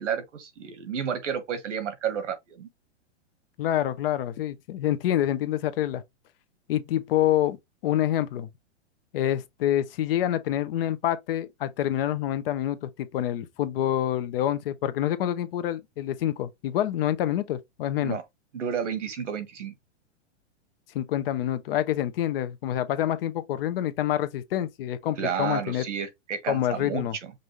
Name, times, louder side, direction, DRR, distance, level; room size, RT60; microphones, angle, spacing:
voice 1, 0.0-2.7 18.0-18.2 18.5-19.7 25.2-27.3, right 7 dB, 85° right, 1.5 m, -31 dB
voice 2, 3.6-6.0 6.7-7.6 7.8-8.5 9.1-18.2 20.9-25.8 26.5-27.2, left 12 dB, 50° left, 0.8 m, -27 dB
5.4 x 2.7 x 3.1 m
hypercardioid pair, 145°, 35 cm